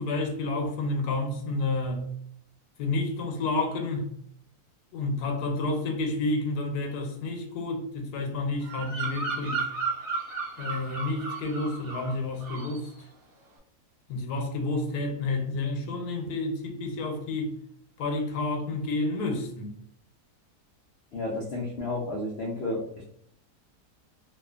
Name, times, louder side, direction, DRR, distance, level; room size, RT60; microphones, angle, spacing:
voice 1, 0.0-2.0 2.8-4.1 4.9-9.7 10.6-12.9 14.1-17.5 18.0-19.7, left 2 dB, 90° left, 1.2 m, -30 dB
Bird vocalization bird call bird song, 8.6-12.2 12.4-12.8, right 4 dB, 75° right, 1.2 m, -34 dB
voice 2, 21.1-22.8, left 2 dB, 75° left, 0.6 m, -31 dB
2.7 x 2.4 x 2.3 m
omnidirectional pair, 1.7 m